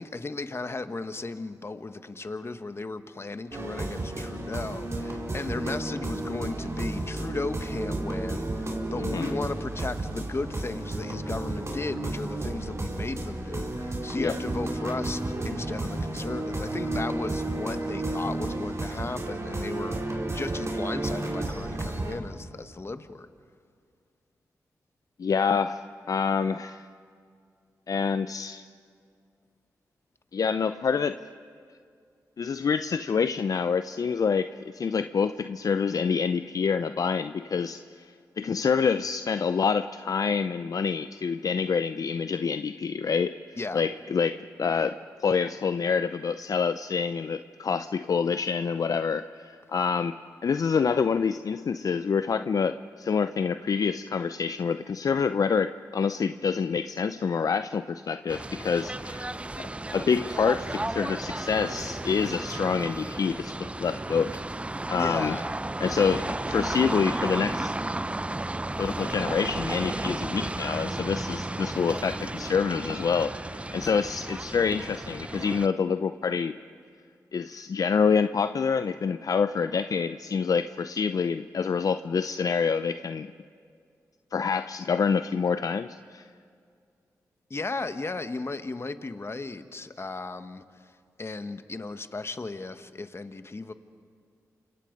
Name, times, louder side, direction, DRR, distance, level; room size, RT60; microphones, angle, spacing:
voice 1, 0.0-20.0 20.3-23.3 43.6-43.8 64.9-65.5 87.5-90.9 91.2-93.7, left 3 dB, 40° left, 10 dB, 1.4 m, -35 dB
sound 1, 3.5-22.2, right 2 dB, 45° right, 4.3 m, -32 dB
voice 2, 25.2-25.8 26.1-26.8 27.9-28.6 30.3-31.2 32.4-38.1 38.4-43.4 43.7-50.2 50.4-59.3 59.6-64.4 64.9-65.4 65.8-67.7 68.8-76.6 77.3-83.3 84.3-86.2, left 6 dB, 60° left, 11 dB, 0.6 m, -27 dB
sound 2, 58.3-75.7, right 2 dB, 15° right, 0.6 m, -33 dB
29.0 x 26.0 x 5.3 m, 2.3 s
supercardioid pair, 45°, 7 cm